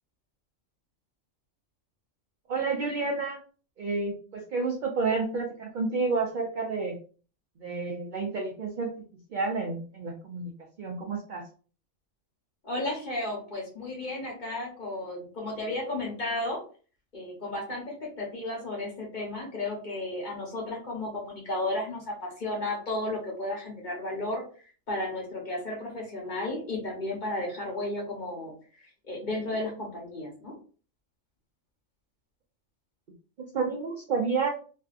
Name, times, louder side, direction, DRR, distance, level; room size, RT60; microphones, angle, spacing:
voice 1, 2.5-3.4 3.8-7.0 7.6-8.9 9.3-10.5 10.8-11.4 33.5-34.6, right 4 dB, 65° right, 0 dB, 0.4 m, -30 dB
voice 2, 12.6-16.6 17.1-24.4 24.9-28.5 29.0-30.6, left 2 dB, 40° left, -2 dB, 0.9 m, -33 dB
2.6 x 2.3 x 2.4 m, 0.39 s
omnidirectional pair, 1.4 m